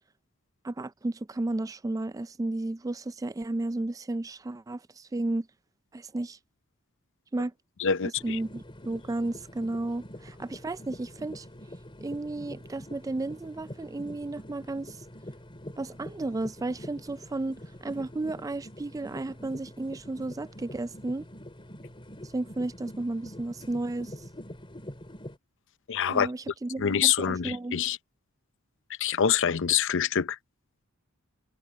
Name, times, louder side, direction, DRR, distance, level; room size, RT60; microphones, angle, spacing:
voice 1, 0.6-5.5 5.9-6.4 7.3-7.5 8.2-11.5 12.0-15.0 15.8-21.3 22.3-24.2 26.1-27.8, right 2 dB, 15° right, 0.3 m, -33 dB
voice 2, 7.8-8.4 25.9-26.3 26.8-28.0 29.0-30.4, left 8 dB, 60° left, 0.6 m, -25 dB
sound 1, 8.2-25.4, left 1 dB, 25° left, 3.2 m, -45 dB
head